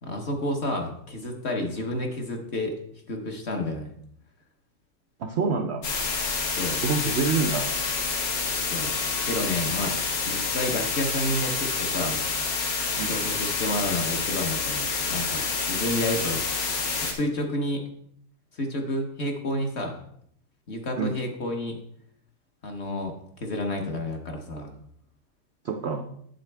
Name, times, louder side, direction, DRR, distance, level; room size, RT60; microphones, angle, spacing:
voice 1, 0.0-2.8 3.1-3.9 6.6-6.8 8.7-10.0 10.2-12.2 13.0-16.4 17.0-17.9 18.5-20.0 20.7-21.8 22.6-24.7, left 1 dB, 45° left, 2 dB, 1.2 m, -30 dB
voice 2, 5.2-5.8 6.8-7.7 12.9-13.1 21.0-21.2 25.6-26.0, right 4 dB, 70° right, 5 dB, 0.6 m, -26 dB
sound 1, 5.8-17.1, left 4 dB, 90° left, 1.8 m, -28 dB
8.3 x 7.7 x 3.4 m, 0.68 s
omnidirectional pair, 1.9 m